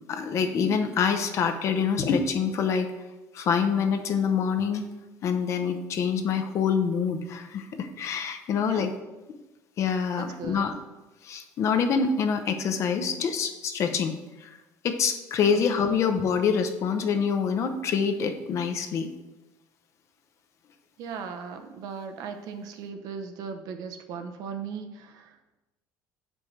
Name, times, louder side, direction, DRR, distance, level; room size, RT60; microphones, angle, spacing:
voice 1, 0.1-2.9 3.3-4.9 5.2-8.9 9.8-10.7 11.2-14.1 14.4-14.5 14.8-19.1, left 6 dB, 45° left, 6 dB, 0.6 m, -26 dB
voice 2, 10.2-10.7 15.5-15.6 21.0-25.6, right 6 dB, 65° right, 7 dB, 0.7 m, -38 dB
6.9 x 5.3 x 3.2 m, 1.1 s
cardioid pair, 135°, 7 cm